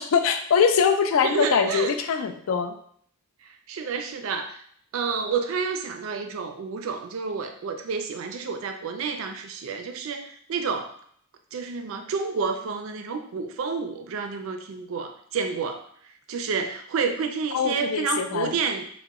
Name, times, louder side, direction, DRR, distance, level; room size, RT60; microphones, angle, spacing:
voice 1, 0.0-2.7 17.5-18.5, left 6 dB, 65° left, 7 dB, 0.3 m, -23 dB
voice 2, 1.2-2.0 3.4-4.6 4.9-10.9 11.5-15.9 16.3-18.9, right 5 dB, 70° right, 6 dB, 0.4 m, -29 dB
2.9 x 2.1 x 3.5 m, 0.62 s
head